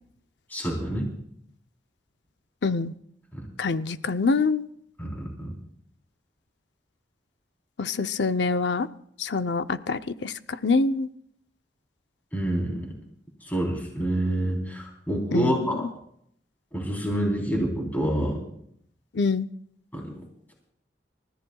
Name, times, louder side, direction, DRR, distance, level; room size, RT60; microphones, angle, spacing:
voice 1, 0.5-1.1 3.3-3.5 5.0-5.5 12.3-12.9 13.4-15.9 16.7-18.4 19.9-20.0, right 1 dB, 10° left, -1 dB, 3.6 m, -27 dB
voice 2, 2.6-2.9 3.6-4.7 7.8-8.9 9.2-10.3 10.6-11.1 15.3-15.8 19.2-19.5, left 4 dB, 75° left, 11 dB, 0.6 m, -25 dB
30.0 x 14.5 x 2.3 m, 0.70 s
head